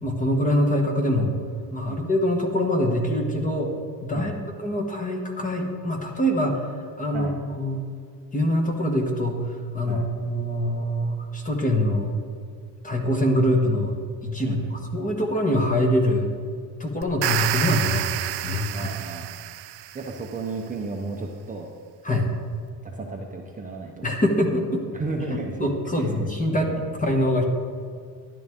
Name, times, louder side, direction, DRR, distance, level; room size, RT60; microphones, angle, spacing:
voice 1, 0.0-1.3 1.7-3.7 4.0-7.8 8.3-9.4 9.7-12.1 12.8-13.9 14.2-16.3 16.8-18.1 18.4-18.9 22.0-22.3 24.0-24.8 25.3-26.6 27.0-27.4, left 1 dB, 20° left, 2 dB, 1.3 m, -24 dB
voice 2, 14.4-14.9 18.7-19.3 19.9-21.7 22.8-24.4 24.9-25.7 26.0-26.8, right 3 dB, 20° right, 0 dB, 0.8 m, -34 dB
sound 1, 17.0-20.2, right 14 dB, 65° right, 0.5 m, -29 dB
12.5 x 11.0 x 3.6 m, 2.2 s
cardioid pair, 145°, 44 cm